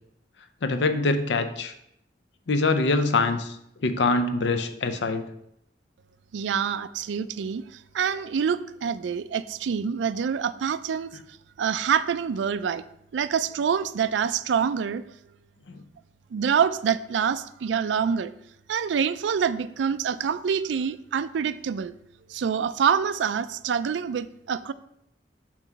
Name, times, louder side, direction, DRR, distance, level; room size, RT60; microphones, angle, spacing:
voice 1, 0.6-1.7 2.5-3.6 3.8-5.2 11.1-11.2 15.7-15.8, left 3 dB, 75° left, 9 dB, 0.6 m, -24 dB
voice 2, 6.3-7.6 7.9-11.1 11.6-12.8 13.1-15.0 16.3-18.3 18.7-21.9 22.3-24.7, right 7 dB, 80° right, 14 dB, 0.4 m, -26 dB
7.2 x 3.1 x 5.7 m, 0.78 s
head